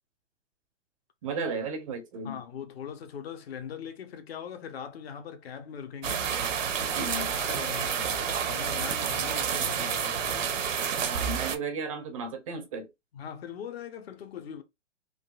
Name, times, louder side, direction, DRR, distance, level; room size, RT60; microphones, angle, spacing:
voice 1, 1.2-2.4 6.9-7.3 11.0-12.9, right 3 dB, 30° right, 0.5 m, -34 dB
voice 2, 2.2-10.8 13.1-14.6, left 8 dB, 50° left, 0.8 m, -41 dB
sound 1, 6.0-11.6, right 7 dB, 80° right, 0.8 m, -29 dB
3.7 x 2.5 x 2.3 m
hypercardioid pair, 140°, 38 cm